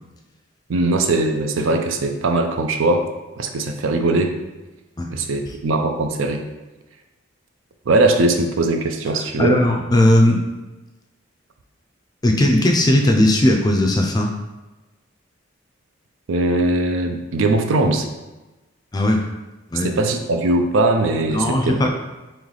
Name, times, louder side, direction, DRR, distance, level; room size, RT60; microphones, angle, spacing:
voice 1, 0.7-3.1 3.4-4.4 5.1-6.4 7.9-9.6 16.3-18.1 19.7-21.9, right 2 dB, 75° right, 5 dB, 0.4 m, -20 dB
voice 2, 9.4-10.4 12.2-14.3 18.9-19.2 19.7-19.9 21.3-21.9, left 1 dB, 20° left, 2 dB, 0.4 m, -17 dB
3.1 x 3.0 x 3.9 m, 1.1 s
head